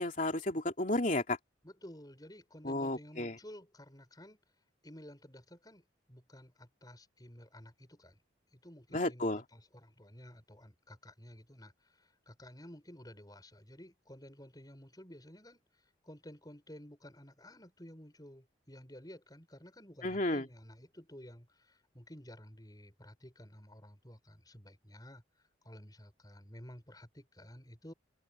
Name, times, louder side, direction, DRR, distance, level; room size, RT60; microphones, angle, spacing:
voice 1, 0.0-1.4 2.6-3.3 8.9-9.4 20.0-20.5, left 1 dB, 45° left, 3.2 m, -32 dB
voice 2, 1.6-4.4 4.8-8.2 8.5-27.9, equal, 20° left, 7.9 m, -53 dB
open air
head